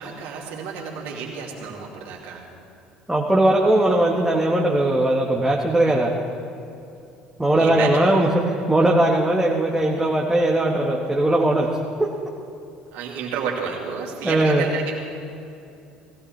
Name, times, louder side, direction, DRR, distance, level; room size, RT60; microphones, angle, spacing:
voice 1, 0.0-2.5 5.8-6.0 7.6-8.1 12.9-14.9, right 6 dB, 65° right, -2 dB, 2.8 m, -31 dB
voice 2, 3.1-6.1 7.4-11.7 14.2-14.6, right 1 dB, 10° right, -2 dB, 1.6 m, -19 dB
19.0 x 16.0 x 3.4 m, 2.6 s
hypercardioid pair, 65°, 4 cm